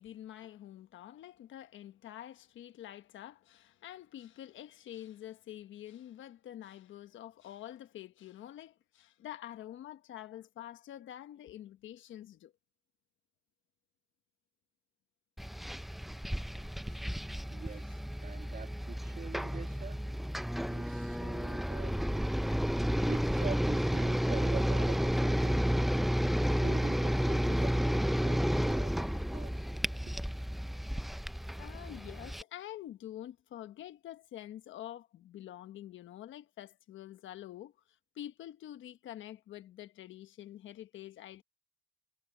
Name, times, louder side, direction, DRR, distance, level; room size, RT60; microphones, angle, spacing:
voice 1, 0.0-12.5 16.9-17.2 17.7-17.8 31.6-37.7 38.1-41.4, left 12 dB, 75° left, 1.3 m, -47 dB
sound 1, 15.4-32.4, equal, ahead, 0.5 m, -31 dB
voice 2, 17.5-20.1 20.7-29.7 30.1-30.3, right 6 dB, 45° right, 2.6 m, -46 dB
cardioid pair, 90°, 20 cm